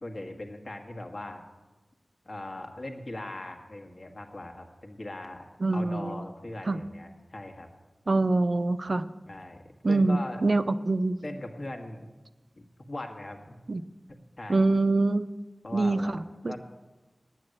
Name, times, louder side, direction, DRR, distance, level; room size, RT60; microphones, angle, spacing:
voice 1, 0.0-1.4 2.2-5.5 5.7-7.7 9.3-9.6 9.9-10.4 11.2-12.1 12.5-13.6 14.4-14.7 15.6-16.2 16.5-16.6, left 1 dB, 65° left, 3 dB, 1.5 m, -39 dB
voice 2, 5.6-6.2 6.7-6.8 8.1-9.1 9.8-11.2 13.7-13.8 14.5-15.3 15.7-16.5, right 2 dB, 55° right, 12 dB, 0.4 m, -25 dB
9.5 x 8.8 x 7.8 m, 1.2 s
wide cardioid pair, 75°, 0 cm